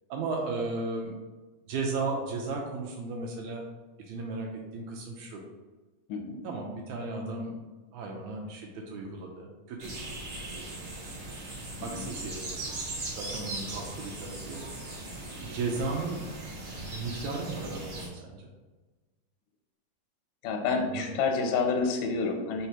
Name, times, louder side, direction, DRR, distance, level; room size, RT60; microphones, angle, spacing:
voice 1, 0.1-1.2 1.7-3.6 4.0-5.4 6.4-7.6 7.9-10.2 10.5-10.7 11.8-12.7 13.1-14.6 15.4-16.3 16.9-18.5 20.7-21.0, right 3 dB, 80° right, 0 dB, 1.8 m, -35 dB
voice 2, 6.1-6.4 11.8-12.1 20.4-22.7, left 4 dB, 90° left, 3 dB, 2.3 m, -29 dB
sound 1, 9.8-18.1, right 2 dB, 40° right, 1.7 m, -39 dB
4.5 x 3.9 x 2.8 m, 1.2 s
omnidirectional pair, 3.6 m